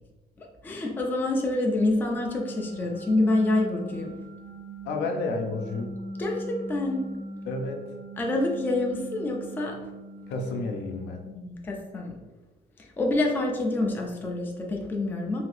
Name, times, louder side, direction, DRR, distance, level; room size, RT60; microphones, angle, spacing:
voice 1, 0.4-4.1 6.2-7.1 8.2-9.8 11.2-12.2 13.0-15.4, left 2 dB, 10° left, 0 dB, 0.3 m, -27 dB
sound 1, 2.1-11.0, right 1 dB, 60° right, 0.5 m, -40 dB
voice 2, 4.8-5.9 7.4-7.8 10.3-11.2, left 3 dB, 85° left, 3 dB, 0.5 m, -30 dB
2.7 x 2.5 x 3.2 m, 1.2 s
cardioid pair, 170°, 18 cm